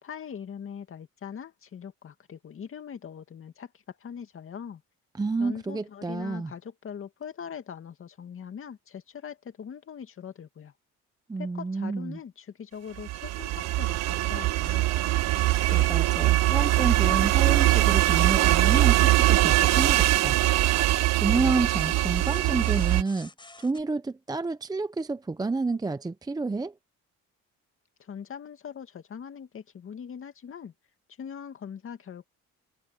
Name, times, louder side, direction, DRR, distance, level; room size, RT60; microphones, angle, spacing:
voice 1, 0.0-4.8 5.4-10.7 11.4-14.8 28.0-30.7 31.2-32.3, left 7 dB, 45° left, 2.4 m, -41 dB
voice 2, 5.2-6.5 11.3-12.2 15.5-20.4 21.1-23.3 23.6-26.7, right 3 dB, 15° right, 0.6 m, -29 dB
sound 1, 13.0-23.0, right 17 dB, 60° right, 0.5 m, -22 dB
sound 2, 14.6-23.8, left 3 dB, 15° left, 4.6 m, -49 dB
cardioid pair, 115°, 31 cm